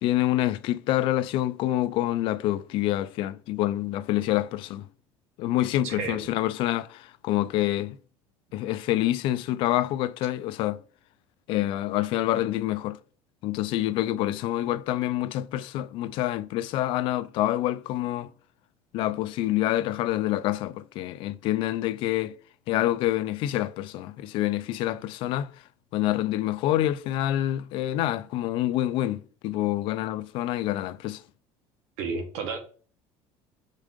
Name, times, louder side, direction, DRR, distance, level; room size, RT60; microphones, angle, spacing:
voice 1, 0.0-4.8 5.4-8.0 8.5-10.8 11.5-13.0 13.4-18.3 18.9-22.3 22.7-25.5 25.9-31.2, left 14 dB, 55° left, 0.4 m, -27 dB
voice 2, 5.8-6.3 32.0-32.6, right 4 dB, 75° right, 1.7 m, -32 dB
5.3 x 3.6 x 5.0 m
cardioid pair, 155°, 10 cm